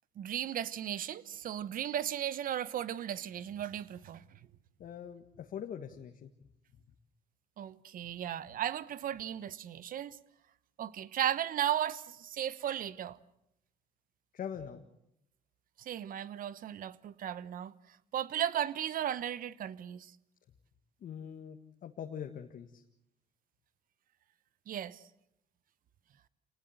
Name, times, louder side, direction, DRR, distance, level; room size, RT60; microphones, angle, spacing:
voice 1, 0.2-4.2 7.6-10.2 10.8-13.2 15.8-17.7 18.1-20.1 24.7-25.0, right 10 dB, 55° right, 1.0 m, -35 dB
voice 2, 4.8-6.3 14.3-14.8 21.0-22.8, left 8 dB, 55° left, 1.7 m, -43 dB
28.0 x 19.0 x 7.9 m
cardioid pair, 110°, 17 cm